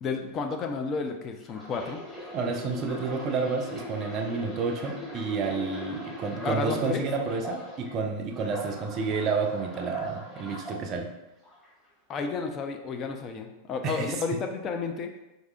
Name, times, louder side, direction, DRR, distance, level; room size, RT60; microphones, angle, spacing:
voice 1, 0.0-2.0 6.4-7.1 12.1-15.1, left 4 dB, 30° left, 4 dB, 0.4 m, -31 dB
sound 1, 1.4-7.9 8.3-10.8 11.4-11.7, left 1 dB, 10° left, 1.4 m, -41 dB
voice 2, 2.3-11.1 13.8-14.1, right 4 dB, 35° right, 3 dB, 0.4 m, -30 dB
4.7 x 2.7 x 2.3 m, 0.97 s
figure-of-eight pair, 90°, 0 cm